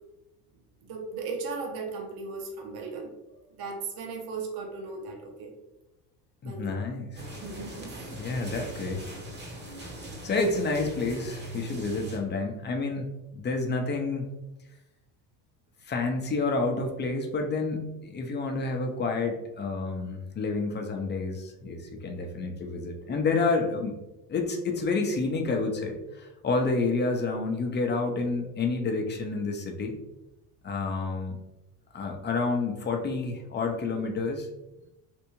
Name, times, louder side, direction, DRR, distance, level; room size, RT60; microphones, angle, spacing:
voice 1, 0.8-3.1 3.5-5.5 6.4-6.8 7.4-8.1, right 4 dB, 50° right, 1 dB, 0.9 m, -37 dB
voice 2, 6.4-7.2 8.1-9.0 10.2-14.3 15.9-24.0 24.3-30.0 30.6-31.4 31.9-34.5, left 3 dB, 25° left, 3 dB, 0.6 m, -29 dB
sound 1, 7.1-12.2, right 1 dB, 25° right, 0.9 m, -40 dB
3.4 x 2.5 x 3.0 m, 0.96 s
hypercardioid pair, 80°, 46 cm